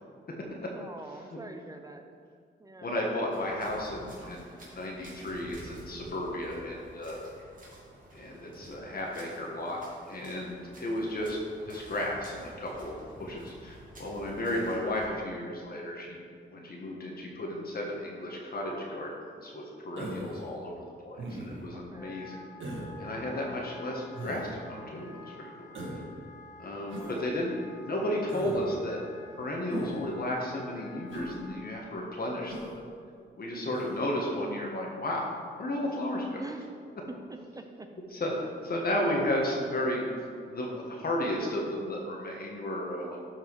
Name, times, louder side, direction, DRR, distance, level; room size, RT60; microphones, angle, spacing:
voice 1, 0.7-2.1 2.6-2.9 21.7-22.1 23.2-23.7 27.0-27.3 36.4-36.7 37.1-37.9, right 2 dB, 15° right, 5 dB, 0.7 m, -45 dB
voice 2, 2.8-7.2 8.1-9.8 10.1-11.4 11.7-16.2 16.5-19.1 19.4-22.4 23.0-25.7 26.6-27.5 27.8-29.0 29.4-32.7 33.4-35.3 35.6-36.4 38.1-40.1 40.5-43.2, left 1 dB, 50° left, -2 dB, 1.4 m, -33 dB
sound 1, 3.3-15.0, right 1 dB, 40° right, 2.5 m, -51 dB
Human voice, 20.0-20.4 21.2-21.7 22.6-22.9 24.1-24.5 25.7-26.1 26.9-27.2 28.3-28.6 29.7-30.1 31.1-31.3 32.5-32.8 33.7-34.0, right 1 dB, 75° right, 1.7 m, -39 dB
Wind instrument woodwind instrument, 21.9-31.8, left 4 dB, 15° left, 0.9 m, -51 dB
12.5 x 4.7 x 4.7 m, 2.1 s
cardioid pair, 105°, 20 cm